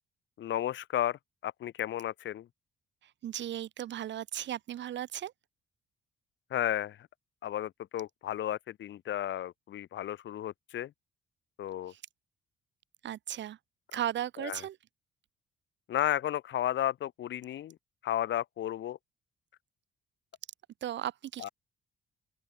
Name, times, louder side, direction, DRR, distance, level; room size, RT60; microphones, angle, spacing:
voice 1, 0.4-2.5 6.5-7.1 7.4-10.9 11.6-11.9 14.4-14.6 15.9-17.8 18.0-19.0 21.4-21.5, left 12 dB, 70° left, 1.4 m, -33 dB
voice 2, 3.0-5.3 11.9-12.0 13.0-13.6 13.9-14.8 20.8-21.5, right 11 dB, 65° right, 1.1 m, -36 dB
open air
cardioid pair, 90°, 20 cm